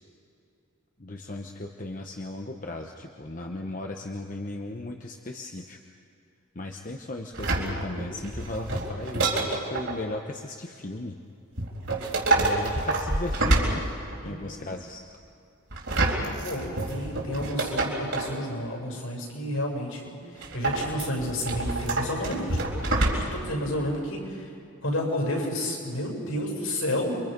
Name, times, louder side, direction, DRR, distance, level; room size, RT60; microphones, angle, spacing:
voice 1, 1.0-5.8 6.5-11.2 12.3-13.8 14.2-15.0, left 2 dB, 35° left, 3 dB, 1.1 m, -36 dB
sound 1, 7.3-10.0 11.6-14.3 15.7-18.4 20.4-23.5 23.8-23.9, right 2 dB, 60° right, 4.1 m, -27 dB
voice 2, 14.2-14.6 16.4-22.6 23.1-24.5 24.8-27.2, left 1 dB, 70° left, 0 dB, 7.5 m, -31 dB
30.0 x 25.0 x 5.4 m, 2.5 s
head